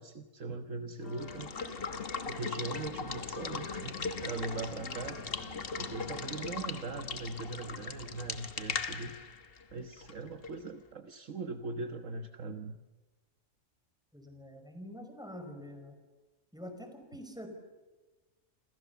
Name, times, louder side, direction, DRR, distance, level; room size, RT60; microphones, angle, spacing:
voice 1, 0.0-1.5 2.3-5.2 5.8-9.1 9.7-12.8, right 3 dB, 65° right, 7 dB, 1.6 m, -40 dB
Wind instrument woodwind instrument, 1.0-6.7, left 2 dB, 65° left, 3.0 m, -52 dB
Water / Water tap faucet / Liquid, 1.1-10.7, left 5 dB, 45° left, 1.5 m, -39 dB
voice 2, 14.1-16.0 16.5-17.5, equal, 5° right, 6 dB, 5.1 m, -46 dB
28.0 x 28.0 x 7.0 m, 1.2 s
omnidirectional pair, 1.4 m